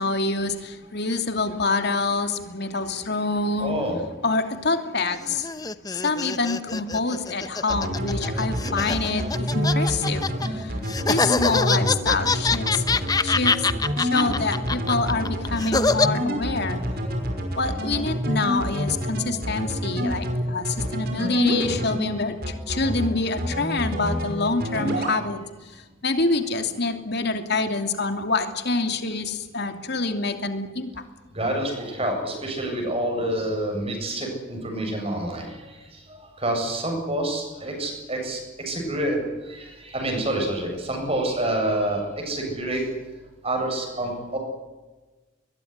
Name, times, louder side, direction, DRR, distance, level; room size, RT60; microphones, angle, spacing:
voice 1, 0.0-3.8 4.2-5.5 5.9-10.8 11.1-12.8 13.2-13.7 14.0-16.8 17.6-25.4 25.7-30.9, left 3 dB, 55° left, 7 dB, 2.9 m, -26 dB
voice 2, 3.6-4.0 11.0-11.1 31.3-35.7 36.2-38.4 38.7-39.2 39.5-42.8 43.4-44.4, right 1 dB, 30° right, 2 dB, 7.9 m, -27 dB
sound 1, 5.1-10.5 10.9-16.1, left 4 dB, 20° left, 0.8 m, -25 dB
sound 2, 7.7-22.1 22.4-23.1 23.4-24.3 24.6-25.2, equal, 50° right, 5.7 m, -27 dB
22.0 x 21.5 x 9.8 m, 1.2 s
head